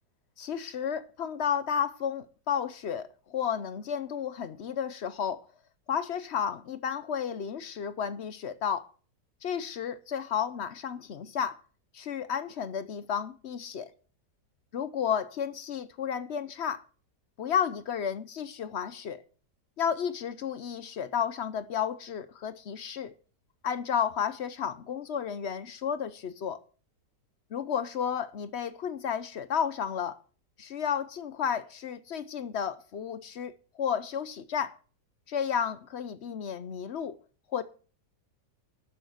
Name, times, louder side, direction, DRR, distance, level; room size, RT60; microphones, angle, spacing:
voice 1, 0.4-5.4 5.9-8.9 9.4-11.6 11.9-13.9 14.7-16.8 17.4-19.2 19.8-23.1 23.6-26.6 27.5-30.2 30.6-34.8 35.3-37.2 37.5-37.6, left 8 dB, 60° left, 0.7 m, -32 dB
12.5 x 6.6 x 6.5 m
omnidirectional pair, 1.9 m